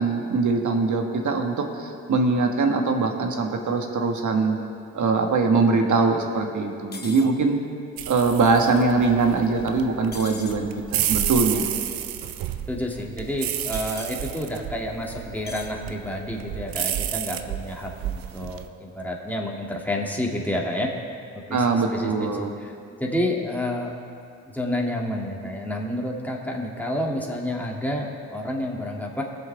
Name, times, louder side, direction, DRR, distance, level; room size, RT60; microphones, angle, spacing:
voice 1, 0.0-4.6 4.9-7.6 8.1-11.7 21.5-22.5, right 4 dB, 55° right, 3 dB, 1.6 m, -22 dB
sound 1, 6.9-7.3 10.1-10.6 13.7-14.2 15.5-15.7 16.7-17.1, left 4 dB, 25° left, 1.0 m, -40 dB
sound 2, 8.0-18.7, right 11 dB, 75° right, 0.6 m, -31 dB
voice 2, 12.7-20.9 21.3-22.7 23.0-23.9 24.5-29.2, left 1 dB, 5° left, -1 dB, 2.4 m, -29 dB
19.5 x 7.4 x 3.5 m, 2.4 s
supercardioid pair, 50°, 35 cm